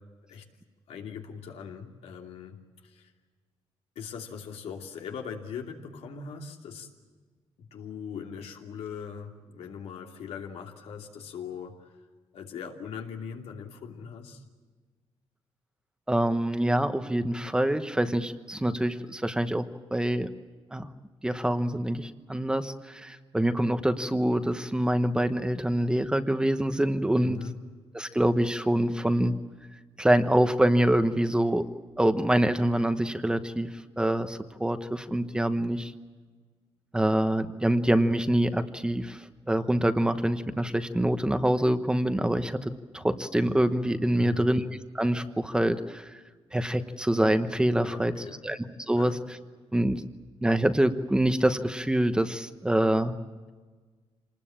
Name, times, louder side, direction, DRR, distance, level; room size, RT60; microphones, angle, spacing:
voice 1, 0.9-2.6 2.8-3.1 3.9-6.9 7.6-12.0 12.3-14.4 27.2-27.6 44.2-44.5 47.8-48.4 49.0-49.2, left 6 dB, 90° left, 2 dB, 2.8 m, -40 dB
voice 2, 16.1-19.7 19.9-20.3 20.7-20.9 21.2-27.4 27.9-29.3 30.0-31.6 32.0-33.7 34.0-35.9 36.9-39.2 39.5-44.6 44.9-46.1 46.5-48.6 48.9-49.1 49.7-50.0 50.4-53.1, right 1 dB, 10° right, 9 dB, 1.0 m, -25 dB
27.0 x 20.0 x 8.8 m, 1.4 s
cardioid pair, 140°, 10 cm